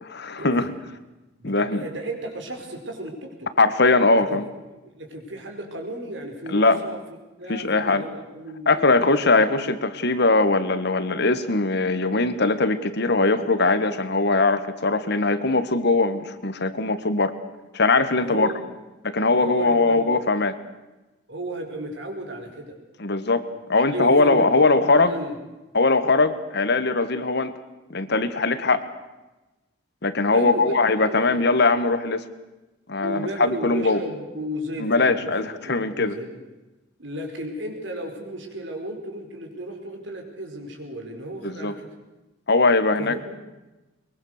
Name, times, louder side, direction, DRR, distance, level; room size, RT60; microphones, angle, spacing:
voice 1, 0.0-0.7 1.4-1.9 3.6-4.5 6.5-6.8 7.5-8.0 8.7-17.3 17.7-18.5 19.0-20.6 23.0-25.1 25.7-27.6 27.9-28.8 30.0-32.2 32.9-34.0 34.8-36.2 41.4-41.8 42.5-43.2, left 3 dB, 60° left, 12 dB, 1.5 m, -21 dB
voice 2, 1.4-3.5 4.1-4.4 4.7-7.0 7.4-9.0 18.1-18.6 19.3-20.1 21.3-22.7 23.7-25.4 30.3-31.5 33.0-35.3 35.6-36.3 37.0-41.9 43.0-43.2, right 1 dB, 65° right, 3 dB, 4.9 m, -34 dB
23.0 x 22.5 x 6.6 m, 1.1 s
head